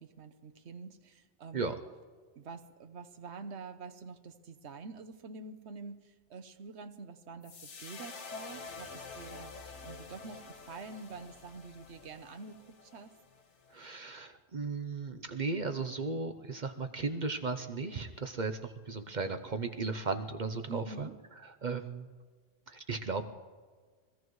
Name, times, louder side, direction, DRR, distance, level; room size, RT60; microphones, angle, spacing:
voice 1, 0.0-1.7 2.4-13.1 20.7-21.2, right 4 dB, 70° right, 8 dB, 1.2 m, -47 dB
sound 1, 7.4-13.8, left 4 dB, 80° left, 1.5 m, -48 dB
voice 2, 13.7-21.1 21.6-22.1 22.7-23.2, right 4 dB, 45° right, 7 dB, 0.8 m, -36 dB
23.0 x 16.5 x 3.1 m, 1.5 s
omnidirectional pair, 1.2 m